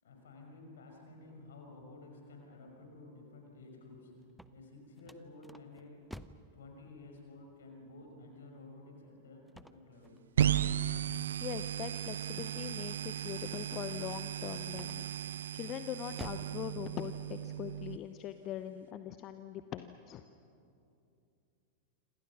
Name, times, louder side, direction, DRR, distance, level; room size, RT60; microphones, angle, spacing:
voice 1, 0.0-4.2 4.5-6.1 6.5-10.2, left 2 dB, 65° left, 2 dB, 5.8 m, -53 dB
sound 1, 4.2-6.5 9.5-10.8 14.7-15.3 15.8-16.6, equal, ahead, 0.8 m, -49 dB
sound 2, 10.4-18.0, right 10 dB, 65° right, 0.7 m, -35 dB
voice 2, 11.4-20.2, left 11 dB, 35° left, 11 dB, 0.9 m, -42 dB
27.5 x 27.0 x 6.1 m, 2.7 s
figure-of-eight pair, 90°, 0 cm